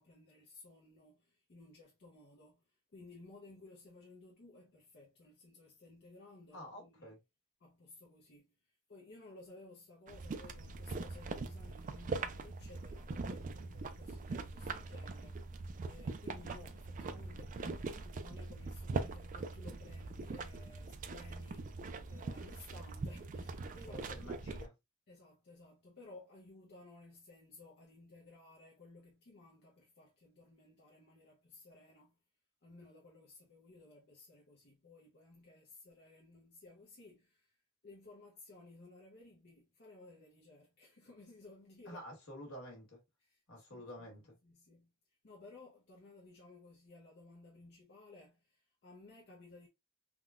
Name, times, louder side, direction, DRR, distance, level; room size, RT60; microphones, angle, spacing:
voice 1, 0.0-7.1 7.6-24.0 25.1-32.2 32.6-42.0 43.2-44.1 44.4-49.7, left 2 dB, 50° left, 0.7 m, -57 dB
voice 2, 6.5-7.2 23.9-24.7 41.8-43.0 43.5-44.3, equal, 75° left, 1.6 m, -49 dB
sound 1, 10.1-24.7, right 3 dB, 40° right, 0.3 m, -42 dB
3.6 x 2.2 x 2.3 m
head